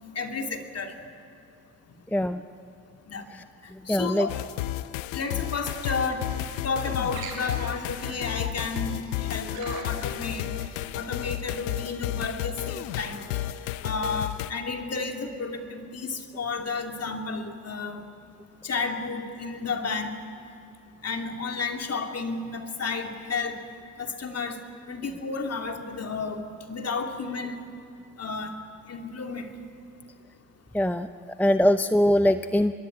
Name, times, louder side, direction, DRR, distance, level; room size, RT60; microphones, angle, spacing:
voice 1, 0.2-0.9 3.1-3.3 3.9-4.3 5.1-6.3 6.6-10.5 10.9-13.5 13.8-18.0 18.6-20.2 21.0-23.6 24.0-24.6 24.9-26.4 26.7-27.6 28.2-28.6 28.9-29.5, left 4 dB, 40° left, 5 dB, 2.7 m, -32 dB
voice 2, 2.1-2.4 3.3-3.4 3.7-4.3 30.7-31.1 31.4-32.7, left 1 dB, 5° left, 11 dB, 0.7 m, -22 dB
sound 1, 4.3-14.5, left 14 dB, 90° left, 0.7 m, -32 dB
sound 2, 5.2-11.4, right 4 dB, 70° right, 6.5 m, -44 dB
24.0 x 21.5 x 8.7 m, 2.5 s
supercardioid pair, 70°, 39 cm